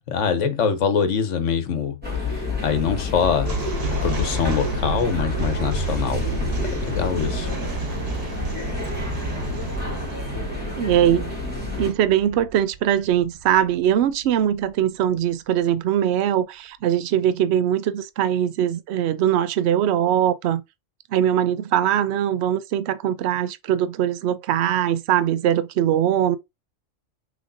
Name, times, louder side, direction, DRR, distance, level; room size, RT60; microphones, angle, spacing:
voice 1, 0.1-6.2 6.7-7.5, left 6 dB, 70° left, 1.2 m, -24 dB
sound 1, 2.0-11.9, left 3 dB, 5° right, 2.1 m, -29 dB
sound 2, 3.4-14.7, right 4 dB, 50° right, 1.3 m, -31 dB
voice 2, 10.8-11.3 11.8-20.6 21.1-26.4, right 10 dB, 65° right, 0.8 m, -21 dB
6.2 x 3.0 x 2.6 m
omnidirectional pair, 1.3 m